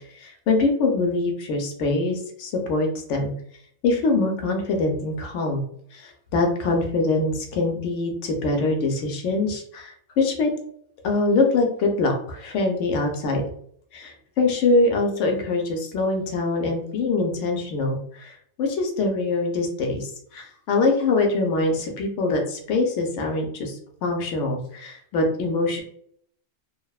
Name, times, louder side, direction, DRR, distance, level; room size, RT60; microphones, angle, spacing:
voice 1, 0.1-3.3 3.8-5.6 5.9-10.5 11.0-13.4 13.9-25.8, left 3 dB, 75° left, 2 dB, 0.9 m, -24 dB
2.8 x 2.0 x 2.3 m, 0.64 s
omnidirectional pair, 1.3 m